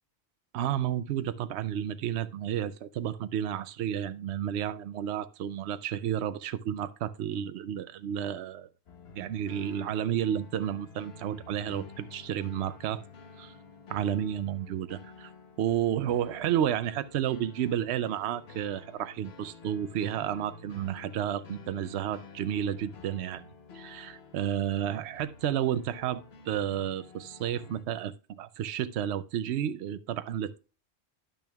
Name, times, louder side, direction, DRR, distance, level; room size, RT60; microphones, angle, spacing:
voice 1, 0.5-8.7 9.1-13.0 13.4-13.6 13.9-15.3 15.6-23.5 23.7-30.6, right 10 dB, 80° right, 0.8 m, -31 dB
sound 1, 8.9-27.8, left 4 dB, 70° left, 1.2 m, -50 dB
10.5 x 9.1 x 2.3 m
omnidirectional pair, 1.1 m